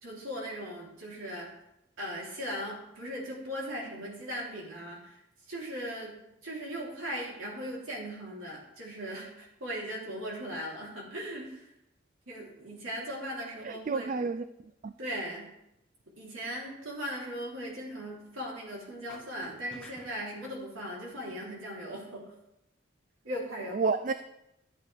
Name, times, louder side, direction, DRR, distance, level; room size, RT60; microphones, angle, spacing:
voice 1, 0.0-1.5 2.0-5.0 5.5-11.5 12.3-14.1 15.0-15.5 16.2-22.2 23.2-23.8, equal, 85° right, 3.4 m, -38 dB
voice 2, 13.6-14.4 14.8-14.9 23.7-24.1, right 4 dB, 40° right, 0.3 m, -30 dB
sound 1, 19.1-20.6, left 2 dB, 5° left, 1.3 m, -50 dB
13.0 x 8.3 x 3.4 m
head